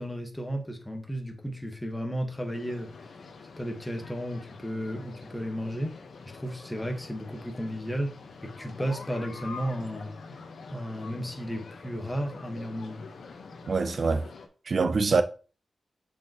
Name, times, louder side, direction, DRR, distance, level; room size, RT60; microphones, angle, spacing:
voice 1, 0.0-3.1 3.6-6.0 6.3-8.2 8.4-10.1 10.7-13.0, equal, 10° left, 1.3 m, -33 dB
sound 1, 2.3-14.5, left 4 dB, 75° left, 1.1 m, -46 dB
voice 2, 13.7-14.3 14.7-15.2, right 4 dB, 50° right, 0.6 m, -24 dB
6.8 x 5.3 x 3.0 m
wide cardioid pair, 110°, 0 cm